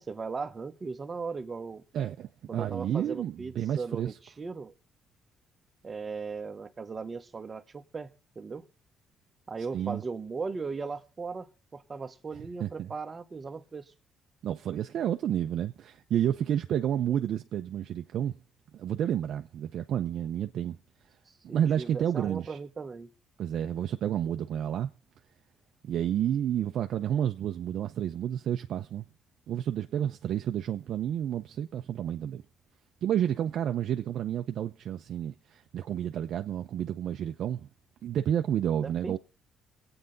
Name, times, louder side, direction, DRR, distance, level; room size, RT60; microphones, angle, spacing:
voice 1, 0.0-1.8 2.5-4.7 5.8-8.1 8.3-8.6 9.5-13.9 21.3-21.4 21.8-23.1 38.8-39.2, right 4 dB, 30° right, 1.1 m, -38 dB
voice 2, 1.9-4.2 9.7-10.0 12.6-12.9 14.4-18.4 18.7-20.8 21.4-22.6 23.4-24.9 25.8-29.1 29.5-32.4 33.0-37.7 38.0-39.2, right 10 dB, 70° right, 0.6 m, -30 dB
23.5 x 8.9 x 4.0 m
cardioid pair, 105°, 0 cm